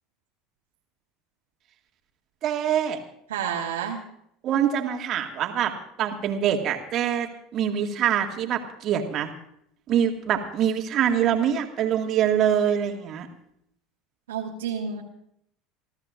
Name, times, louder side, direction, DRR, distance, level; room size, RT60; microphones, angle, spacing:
voice 1, 2.4-3.0 4.4-5.7 6.0-9.3 9.9-13.3, right 9 dB, 50° right, 3 dB, 2.1 m, -24 dB
voice 2, 3.3-4.0 14.3-15.0, right 7 dB, 75° right, 0 dB, 1.3 m, -29 dB
28.5 x 13.5 x 2.6 m, 0.72 s
figure-of-eight pair, 70°, 0 cm